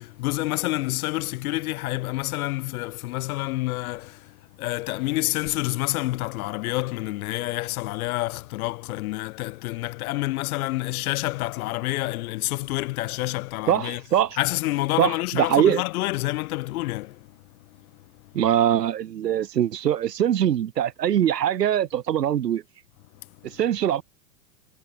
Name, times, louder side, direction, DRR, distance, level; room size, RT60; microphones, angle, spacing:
voice 1, 0.0-14.0 14.4-18.4 23.2-23.6, left 19 dB, 60° left, 4.2 m, -28 dB
voice 2, 13.7-14.4 15.0-15.8 18.3-22.6 23.4-24.0, right 10 dB, 85° right, 2.8 m, -22 dB
hypercardioid pair, 110°, 48 cm